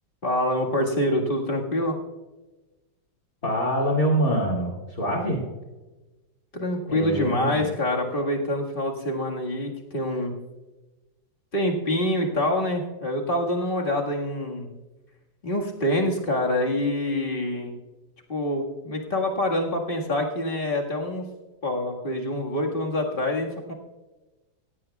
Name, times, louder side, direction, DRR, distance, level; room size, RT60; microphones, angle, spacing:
voice 1, 0.2-2.0 6.5-10.3 11.5-14.7 15.4-17.7 18.3-21.2 21.6-23.7, left 1 dB, 30° left, 0 dB, 1.8 m, -26 dB
voice 2, 3.4-5.4 6.9-7.7, right 1 dB, 45° left, -2 dB, 2.9 m, -25 dB
17.5 x 16.0 x 2.4 m, 1.1 s
omnidirectional pair, 2.1 m